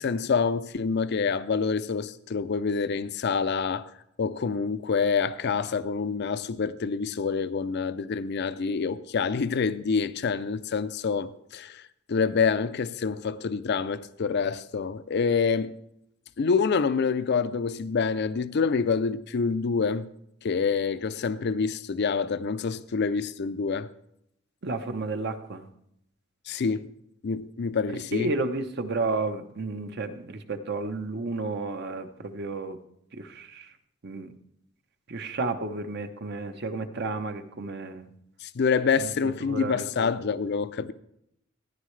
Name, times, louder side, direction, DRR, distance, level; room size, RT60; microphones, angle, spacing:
voice 1, 0.0-3.9 4.2-11.8 12.1-15.7 16.4-20.1 20.4-23.9 26.5-26.9 27.2-28.3 38.4-40.9, left 5 dB, 55° left, 0.5 m, -27 dB
voice 2, 24.6-25.7 28.1-32.8 33.1-33.7 34.0-34.3 35.1-38.1 39.0-40.0, right 3 dB, 55° right, 0.9 m, -32 dB
14.5 x 10.0 x 3.2 m
head